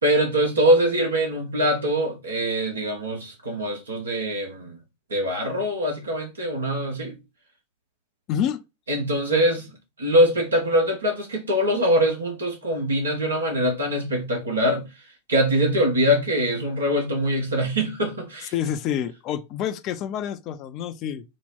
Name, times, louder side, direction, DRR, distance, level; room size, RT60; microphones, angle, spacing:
voice 1, 0.0-4.8 5.1-7.1 8.9-9.7 10.0-14.9 15.3-18.5, equal, 70° right, 1.0 m, -23 dB
voice 2, 8.3-8.6 18.5-21.2, left 9 dB, 35° left, 0.4 m, -28 dB
4.1 x 2.1 x 3.6 m
figure-of-eight pair, 90°, 0 cm